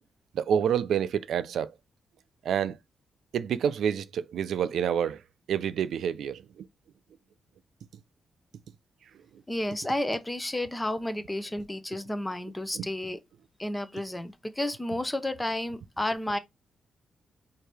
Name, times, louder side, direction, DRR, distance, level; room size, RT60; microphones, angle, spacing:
voice 1, 0.4-1.7 2.5-2.8 3.3-5.2 5.5-6.4 12.8-12.9, right 8 dB, 85° right, 0.4 m, -28 dB
voice 2, 9.5-13.2 13.6-16.4, left 1 dB, 10° left, 0.6 m, -31 dB
4.6 x 2.7 x 3.3 m
cardioid pair, 120°, 0 cm